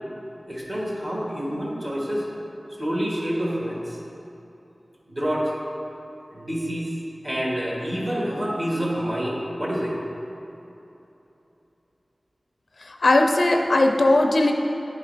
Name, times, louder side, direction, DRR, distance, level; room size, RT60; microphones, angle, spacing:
voice 1, 0.5-2.3 2.8-4.0 5.1-5.5 6.3-6.9 7.2-10.0, equal, 45° right, -4 dB, 1.6 m, -27 dB
voice 2, 12.8-14.5, left 2 dB, 75° left, 3 dB, 0.5 m, -19 dB
10.0 x 4.0 x 3.9 m, 3.0 s
wide cardioid pair, 75°, 0 cm